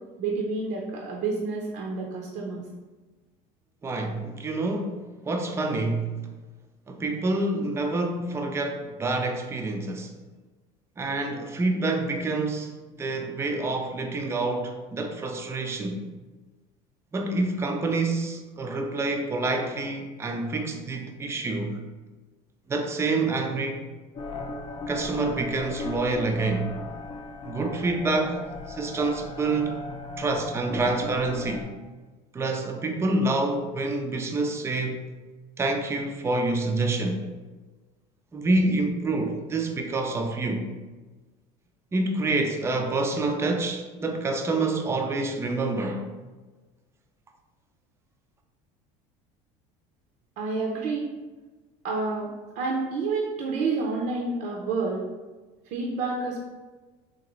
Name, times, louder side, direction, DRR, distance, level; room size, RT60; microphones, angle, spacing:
voice 1, 0.2-2.6 50.4-51.1 51.8-52.3 52.6-55.0 55.7-56.4, right 3 dB, 60° right, -2 dB, 0.6 m, -29 dB
voice 2, 3.8-5.0 5.2-6.1 6.9-10.1 11.0-12.7 13.0-16.0 17.1-21.7 22.7-23.9 24.9-26.7 27.4-28.4 28.7-29.8 30.2-31.7 32.3-35.0 35.6-37.3 38.3-40.7 41.9-46.1, right 2 dB, 15° right, 4 dB, 0.4 m, -27 dB
sound 1, 24.1-31.6, left 3 dB, 40° left, 0.6 m, -37 dB
3.8 x 2.8 x 3.0 m, 1.2 s
supercardioid pair, 100°, 16 cm